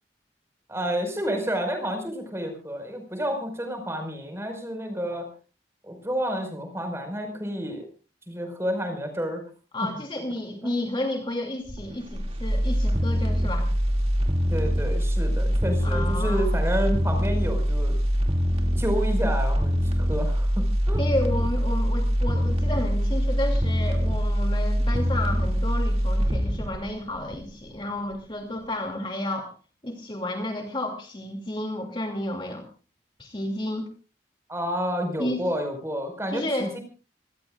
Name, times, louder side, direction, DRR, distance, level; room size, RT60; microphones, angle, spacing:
voice 1, 0.7-5.3 5.8-7.9 8.3-9.4 9.8-9.9 10.6-10.7 14.5-18.0 18.8-21.0 34.5-36.8, equal, 15° right, 5 dB, 5.1 m, -30 dB
voice 2, 9.7-13.7 15.8-16.5 21.0-29.5 29.8-32.7 33.2-33.9 35.2-35.4 36.3-36.7, left 1 dB, 25° left, 2 dB, 2.6 m, -31 dB
sound 1, 11.7-27.8 28.1-28.2, equal, 35° right, 2.5 m, -24 dB
26.5 x 18.5 x 2.5 m, 0.36 s
head